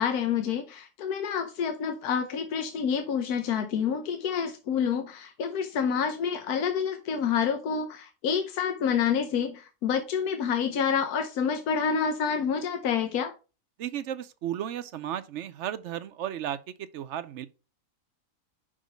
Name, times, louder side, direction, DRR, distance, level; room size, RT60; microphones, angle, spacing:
voice 1, 0.0-13.3, left 7 dB, 85° left, 1.3 m, -28 dB
voice 2, 13.8-17.5, right 10 dB, 65° right, 0.8 m, -34 dB
5.5 x 5.0 x 5.1 m
omnidirectional pair, 1.6 m